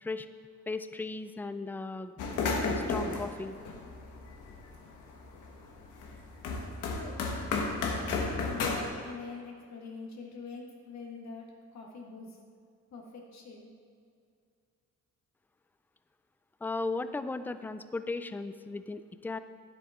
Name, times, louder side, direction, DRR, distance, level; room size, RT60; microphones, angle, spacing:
voice 1, 0.7-2.1 2.6-3.6 16.6-19.4, left 3 dB, 5° left, 11 dB, 0.3 m, -36 dB
sound 1, 2.2-4.8 5.2-8.8, left 3 dB, 85° left, 1.3 m, -33 dB
voice 2, 6.9-7.2 7.8-8.2 8.4-12.4 12.9-13.7, left 4 dB, 65° left, 0 dB, 1.6 m, -44 dB
10.0 x 8.1 x 3.5 m, 2.3 s
cardioid pair, 90°, 30 cm